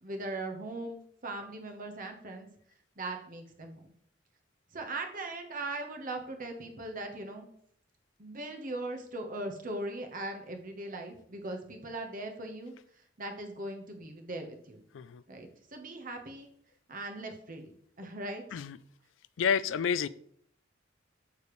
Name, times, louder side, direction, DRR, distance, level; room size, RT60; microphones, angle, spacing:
voice 1, 0.0-2.5 3.0-3.8 4.7-7.5 8.2-12.7 13.2-14.8 15.3-16.5 16.9-17.7 18.0-18.6, right 2 dB, 45° right, 1.2 m, -39 dB
voice 2, 19.4-20.1, left 7 dB, 85° left, 0.4 m, -29 dB
6.9 x 6.7 x 3.2 m
head